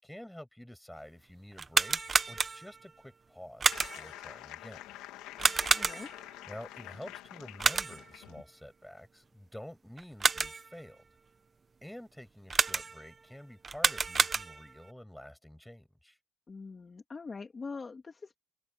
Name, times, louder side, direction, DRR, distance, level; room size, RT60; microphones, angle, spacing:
voice 1, 0.0-4.8 6.5-11.0 11.8-16.2, left 1 dB, 5° left, 6.2 m, -49 dB
sound 1, 1.5-2.8 3.6-4.2 5.4-6.3 7.6-8.2 10.0-10.7 12.5-13.1 13.6-14.8, right 4 dB, 25° right, 1.2 m, -29 dB
sound 2, 3.7-8.4, left 15 dB, 85° left, 2.2 m, -47 dB
voice 2, 5.8-6.1 16.5-18.4, left 4 dB, 20° left, 2.6 m, -43 dB
cardioid pair, 140°, 0 cm